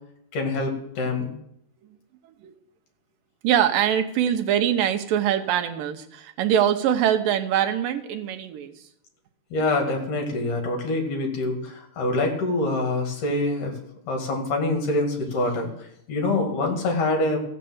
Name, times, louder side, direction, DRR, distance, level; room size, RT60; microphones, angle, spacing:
voice 1, 0.3-1.3 9.5-13.7 14.1-15.7 16.1-17.4, left 2 dB, 60° left, 2 dB, 3.5 m, -25 dB
voice 2, 3.4-8.8, right 10 dB, 75° right, 6 dB, 2.6 m, -23 dB
15.0 x 6.6 x 7.9 m, 0.77 s
omnidirectional pair, 4.3 m